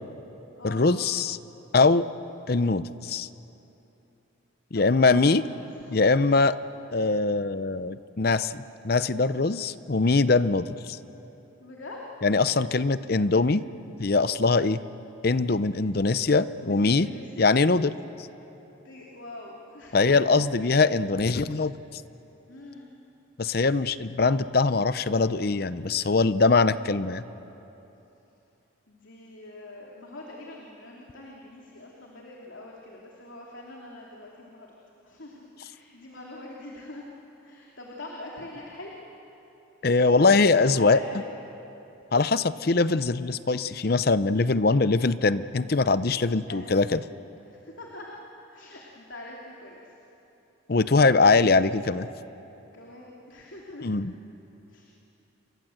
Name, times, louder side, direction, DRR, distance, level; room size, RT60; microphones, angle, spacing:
voice 1, 0.6-1.4 1.7-2.1 2.5-3.3 4.7-5.4 5.9-6.6 6.9-11.0 12.2-13.6 14.0-14.8 15.2-17.1 17.4-17.9 19.9-22.0 23.4-27.2 39.8-41.0 42.1-47.0 50.7-52.1 53.8-54.1, left 3 dB, 50° left, 14 dB, 0.6 m, -22 dB
voice 2, 4.7-6.1 11.6-12.0 16.6-17.5 18.8-20.1 22.5-22.9 28.9-34.7 35.0-37.1 37.4-38.9 40.0-41.3 46.5-46.7 47.5-48.1 48.5-49.8 52.7-54.0 54.7-54.9, left 2 dB, 70° left, -2 dB, 3.0 m, -43 dB
29.0 x 22.0 x 7.9 m, 3.0 s
head